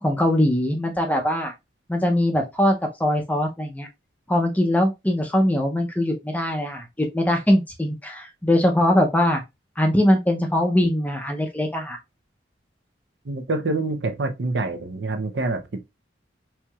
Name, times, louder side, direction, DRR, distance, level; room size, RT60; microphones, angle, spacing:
voice 1, 0.0-1.5 1.9-3.9 4.3-9.4 9.8-12.0, left 1 dB, 10° left, 0.6 m, -21 dB
voice 2, 13.2-15.8, right 2 dB, 65° right, 0.7 m, -26 dB
4.5 x 2.8 x 2.3 m
head